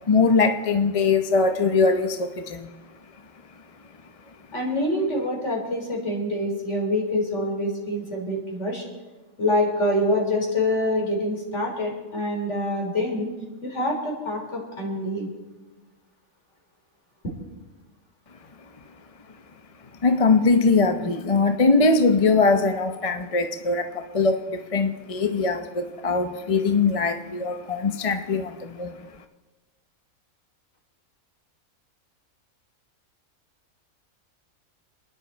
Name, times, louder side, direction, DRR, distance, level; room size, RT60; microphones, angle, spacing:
voice 1, 0.1-2.7 20.0-29.0, left 4 dB, 30° left, 6 dB, 0.7 m, -21 dB
voice 2, 4.5-8.8 9.4-13.3 13.6-15.3 17.2-17.3, left 1 dB, 55° left, 0 dB, 4.2 m, -26 dB
27.5 x 11.0 x 4.5 m, 1.2 s
omnidirectional pair, 1.5 m